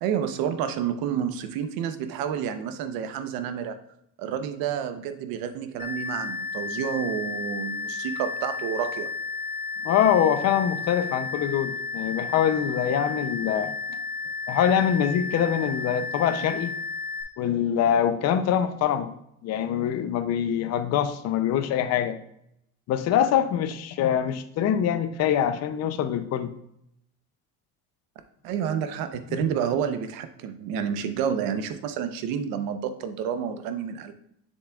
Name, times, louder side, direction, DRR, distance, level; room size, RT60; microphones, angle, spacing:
voice 1, 0.0-3.8 4.2-9.1 28.4-34.1, right 8 dB, 75° right, 9 dB, 0.8 m, -29 dB
sound 1, 5.8-17.2, left 4 dB, 25° left, 1.5 m, -33 dB
voice 2, 9.8-13.8 14.5-16.8 17.4-19.1 19.4-22.2 22.9-26.5, left 9 dB, 45° left, 11 dB, 0.5 m, -24 dB
7.2 x 6.8 x 2.3 m, 0.75 s
cardioid pair, 170°, 35 cm